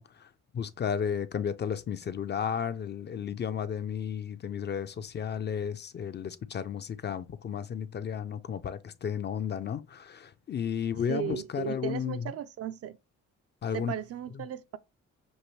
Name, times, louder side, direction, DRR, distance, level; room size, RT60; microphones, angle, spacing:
voice 1, 0.0-12.3 13.6-13.9, left 8 dB, 35° left, 0.4 m, -33 dB
voice 2, 11.1-13.0 13.7-14.8, right 10 dB, 50° right, 0.4 m, -36 dB
6.4 x 2.6 x 3.0 m
cardioid pair, 90°, 30 cm